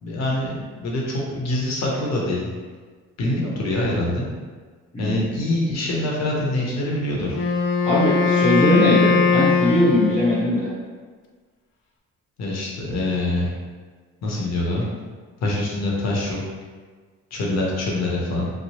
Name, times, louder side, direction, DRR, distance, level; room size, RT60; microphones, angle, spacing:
voice 1, 0.0-2.5 3.2-4.3 5.0-7.4 12.4-13.5 14.2-14.8 15.4-16.4 17.3-18.5, left 1 dB, 60° left, -3 dB, 0.8 m, -25 dB
voice 2, 4.9-5.2 7.8-10.7, left 1 dB, 20° left, -10 dB, 0.9 m, -20 dB
Wind instrument woodwind instrument, 7.3-10.6, left 5 dB, 45° left, 0.4 m, -20 dB
3.0 x 2.0 x 2.9 m, 1.5 s
cardioid pair, 90°, 30 cm